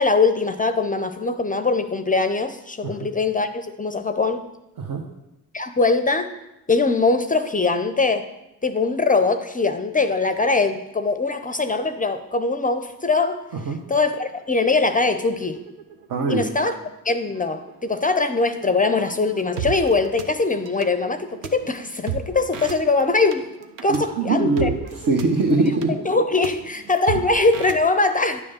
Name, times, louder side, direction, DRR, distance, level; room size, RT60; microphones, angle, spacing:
voice 1, 0.0-4.5 5.5-6.3 6.7-8.2 8.6-13.4 13.9-15.6 16.3-16.7 17.0-23.5 23.8-24.7 25.5-25.6 26.0-28.4, left 3 dB, 20° left, 10 dB, 0.5 m, -22 dB
sound 1, 12.3-12.4 12.7-13.1 13.5-27.8, right 8 dB, 75° right, 0.8 m, -37 dB
voice 2, 16.1-16.5 23.9-26.0, right 3 dB, 50° right, 1 dB, 1.1 m, -22 dB
9.9 x 3.5 x 6.6 m, 0.94 s
supercardioid pair, 55°, 42 cm